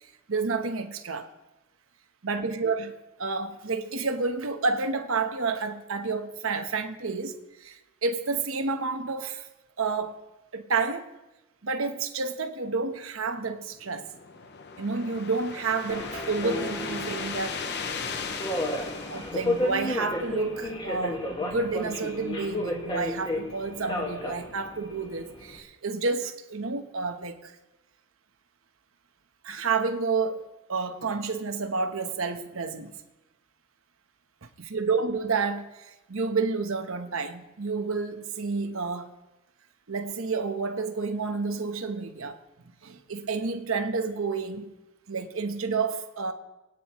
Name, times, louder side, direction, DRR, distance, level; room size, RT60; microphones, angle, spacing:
voice 1, 0.3-1.3 2.2-9.5 9.8-10.2 10.5-11.1 11.6-14.1 14.8-17.6 19.1-27.6 29.4-33.0 34.4-39.1 39.9-42.4 42.8-44.7 45.1-46.3, right 4 dB, 70° right, 1.1 m, -30 dB
sound 1, 13.7-20.2, left 6 dB, 55° left, 0.8 m, -38 dB
Subway metro underground, 15.9-25.6, left 1 dB, 25° left, 1.8 m, -33 dB
23.0 x 9.2 x 3.1 m
head